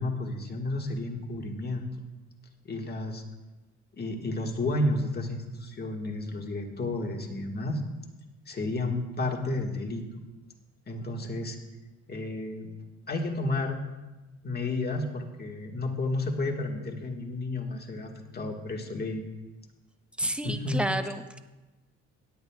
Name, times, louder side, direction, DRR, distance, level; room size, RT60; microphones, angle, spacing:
voice 1, 0.0-1.8 2.6-3.2 3.9-7.8 8.5-10.0 10.9-11.6 12.1-12.7 13.1-13.8 14.4-19.2 20.4-20.8, left 2 dB, 30° left, 2 dB, 1.7 m, -31 dB
voice 2, 20.2-21.4, right 1 dB, 5° right, 8 dB, 0.7 m, -30 dB
17.0 x 10.0 x 2.3 m, 1.1 s
cardioid pair, 90°, 30 cm